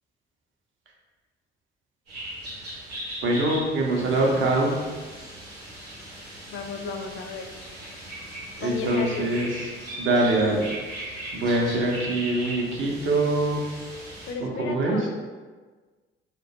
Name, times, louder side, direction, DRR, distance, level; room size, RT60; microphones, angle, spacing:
sound 1, 2.1-14.3, right 1 dB, 85° right, 0.7 m, -38 dB
voice 1, 3.2-4.8 8.6-9.7 10.0-11.1 11.3-13.7 14.5-15.1, right 2 dB, 45° right, -2 dB, 0.6 m, -24 dB
voice 2, 6.5-7.5 8.6-9.3 14.2-15.1, left 5 dB, 45° left, 4 dB, 0.4 m, -34 dB
2.2 x 2.1 x 2.7 m, 1.4 s
figure-of-eight pair, 50°, 29 cm